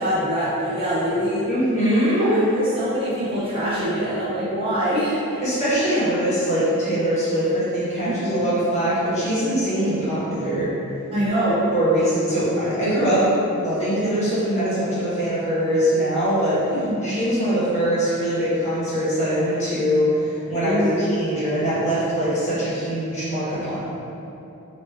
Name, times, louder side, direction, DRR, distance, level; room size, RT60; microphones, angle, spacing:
voice 1, 0.0-1.5 2.2-5.4 8.0-8.5 11.1-11.7 16.7-17.2 20.6-21.2, equal, 25° right, -10 dB, 0.6 m, -24 dB
voice 2, 1.5-2.4 5.4-10.7 11.3-11.4 11.7-13.2 13.6-16.8 17.0-23.8, equal, 30° left, -12 dB, 1.4 m, -22 dB
3.0 x 2.9 x 3.3 m, 2.9 s
head